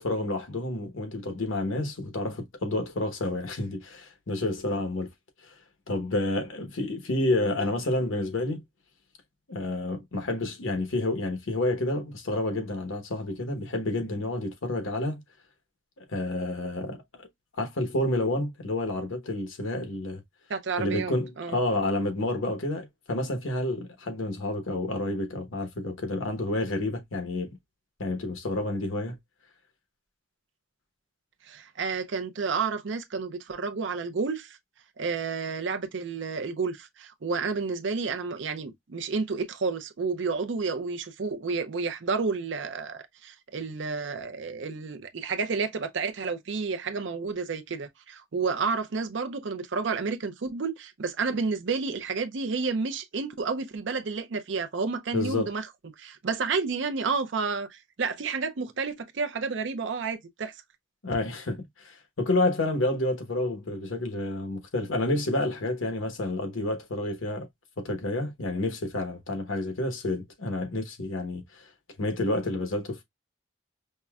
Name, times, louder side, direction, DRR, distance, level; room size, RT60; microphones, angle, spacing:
voice 1, 0.0-5.1 5.4-5.5 5.9-8.6 9.5-15.2 16.1-17.3 17.6-20.2 20.8-27.6 28.0-29.2 55.1-55.5 61.0-67.5 67.8-71.7 72.0-73.0, left 2 dB, 85° left, 1.1 m, -29 dB
voice 2, 20.5-21.6 31.4-34.6 35.0-55.7 56.0-60.5, right 4 dB, 65° right, 0.5 m, -30 dB
5.3 x 2.1 x 2.3 m
head